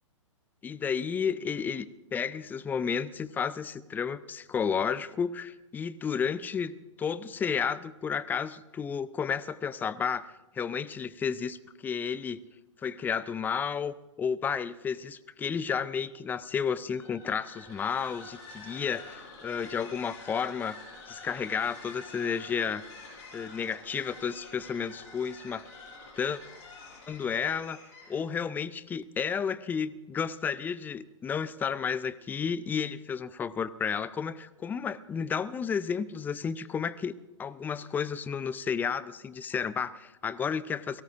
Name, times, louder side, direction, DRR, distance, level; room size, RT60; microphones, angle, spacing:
voice 1, 0.6-12.4 12.8-20.8 21.1-22.8 23.3-25.6 26.2-26.4 27.1-27.8 28.1-37.1 37.4-41.0, left 6 dB, 10° left, 19 dB, 0.5 m, -32 dB
sound 1, 16.9-28.3, left 3 dB, 40° left, 5.6 m, -48 dB
30.0 x 18.0 x 2.6 m, 0.96 s
figure-of-eight pair, 110°, 16 cm